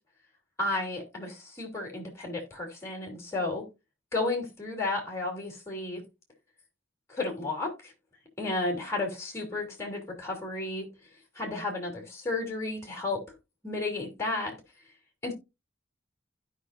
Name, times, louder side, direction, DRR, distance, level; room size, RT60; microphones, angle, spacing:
voice 1, 0.6-3.7 4.1-6.0 7.1-7.9 8.4-10.9 11.3-13.2 13.6-14.5 15.2-15.3, left 2 dB, 15° left, 3.0 m, -32 dB
15.5 x 5.4 x 2.5 m
head